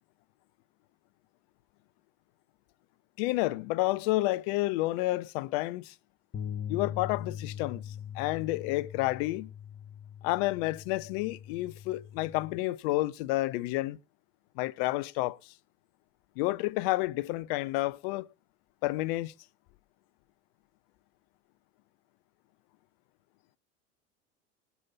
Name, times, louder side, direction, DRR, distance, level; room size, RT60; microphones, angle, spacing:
voice 1, 3.2-5.9 6.7-9.5 10.2-14.0 14.6-15.5 16.4-18.3 18.8-19.3, left 18 dB, 50° left, 0.7 m, -30 dB
sound 1, 6.3-12.6, left 9 dB, 25° left, 1.5 m, -41 dB
19.5 x 6.9 x 4.0 m
hypercardioid pair, 90°, 38 cm